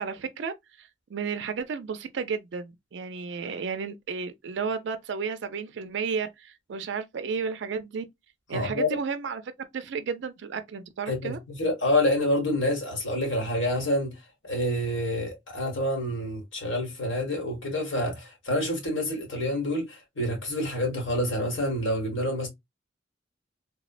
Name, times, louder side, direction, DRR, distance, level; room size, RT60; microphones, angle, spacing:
voice 1, 0.0-8.0 8.5-9.4 9.7-11.4, right 5 dB, 65° right, 0.4 m, -33 dB
voice 2, 8.5-9.0 11.1-14.1 14.4-22.5, left 1 dB, 90° left, 1.5 m, -27 dB
3.4 x 2.1 x 2.3 m
head